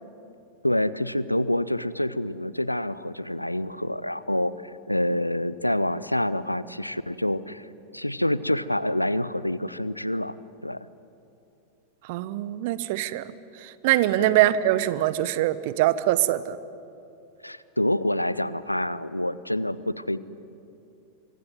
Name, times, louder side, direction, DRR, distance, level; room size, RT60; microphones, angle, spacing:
voice 1, 0.6-7.7 7.9-10.4 10.6-10.9 14.2-14.3 17.4-20.2, left 1 dB, 85° left, 17 dB, 0.7 m, -27 dB
voice 2, 12.1-13.2 13.8-16.6, right 14 dB, 50° right, 15 dB, 1.1 m, -23 dB
25.5 x 23.5 x 9.4 m, 2.8 s
figure-of-eight pair, 90°, 0 cm